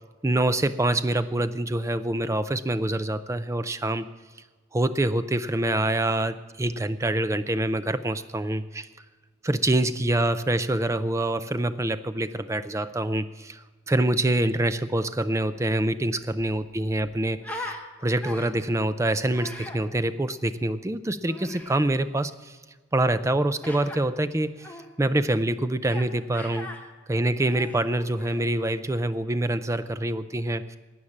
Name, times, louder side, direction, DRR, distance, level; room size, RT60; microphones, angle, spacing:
voice 1, 0.2-4.0 4.7-8.9 9.4-22.6 22.9-24.7 25.0-26.7 27.1-30.8, right 1 dB, 15° right, 12 dB, 0.4 m, -26 dB
Human voice, 15.8-15.9 16.2-17.8 18.2-18.7 19.3-19.8 21.3-21.8 23.6-24.0 24.6-24.9 25.8-26.1 26.3-26.8 27.4-28.5, left 2 dB, 10° left, 1.1 m, -39 dB
13.0 x 8.8 x 7.2 m, 1.4 s
head